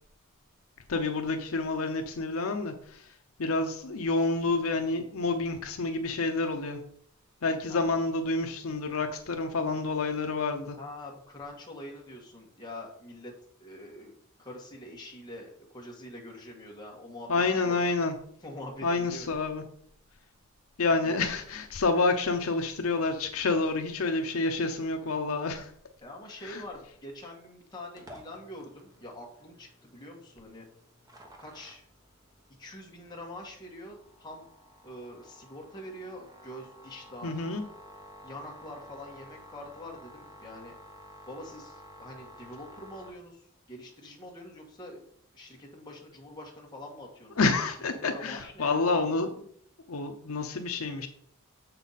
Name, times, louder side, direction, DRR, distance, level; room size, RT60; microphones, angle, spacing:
voice 1, 0.9-6.8 7.4-10.8 17.3-18.1 18.8-19.6 20.8-25.7 26.4-26.6 37.2-37.6 47.4-49.4 49.9-51.1, left 3 dB, 70° left, 6 dB, 0.7 m, -28 dB
voice 2, 10.8-13.3 13.6-17.8 18.4-19.3 21.0-21.2 26.0-30.6 31.4-31.8 32.6-34.5 34.8-37.4 38.2-40.8 41.3-45.0 45.3-47.5 47.9-48.8, left 1 dB, 20° left, -1 dB, 1.6 m, -45 dB
sound 1, 28.0-43.1, left 1 dB, 15° right, 1.0 m, -52 dB
7.1 x 5.6 x 4.1 m, 0.64 s
head